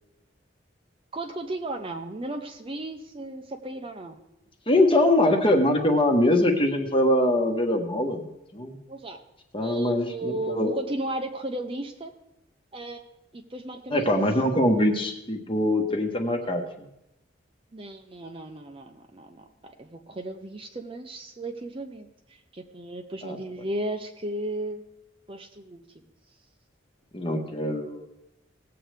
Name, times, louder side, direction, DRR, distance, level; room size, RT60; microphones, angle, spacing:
voice 1, 1.1-4.2 8.9-9.2 9.6-12.1 12.7-13.0 13.3-14.2 17.7-22.1 22.5-24.8 25.3-25.8, right 2 dB, 30° right, 5 dB, 0.7 m, -35 dB
voice 2, 4.7-8.3 8.5-8.8 9.5-10.7 13.9-16.9 23.2-23.4 27.1-28.1, left 1 dB, 25° left, 3 dB, 1.2 m, -23 dB
18.5 x 7.7 x 3.4 m, 0.87 s
head